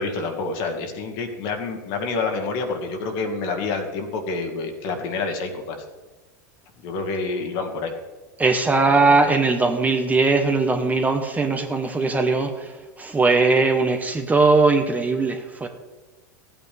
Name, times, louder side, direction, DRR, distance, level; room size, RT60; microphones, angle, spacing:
voice 1, 0.0-5.8 6.8-7.9 9.0-9.3, left 3 dB, 55° left, 4 dB, 2.0 m, -28 dB
voice 2, 8.4-15.7, right 3 dB, 15° right, 5 dB, 1.1 m, -20 dB
14.5 x 9.0 x 3.5 m, 1.2 s
hypercardioid pair, 100°, 10 cm